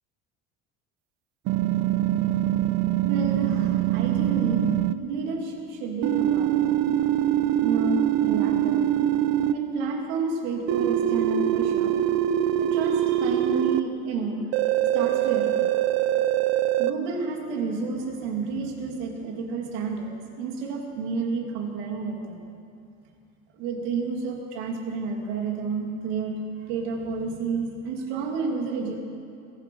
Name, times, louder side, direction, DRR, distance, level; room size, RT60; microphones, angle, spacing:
sound 1, 1.5-4.9 6.0-9.5 10.7-13.8 14.5-16.9, right 12 dB, 60° right, 0.6 m, -23 dB
voice 1, 3.0-4.7 5.0-6.7 7.6-8.8 9.5-12.0 12.6-14.5 14.9-15.7 16.8-22.4 23.6-29.0, right 4 dB, 90° right, 2 dB, 2.6 m, -30 dB
22.5 x 11.5 x 5.4 m, 2.6 s
cardioid pair, 150°, 30 cm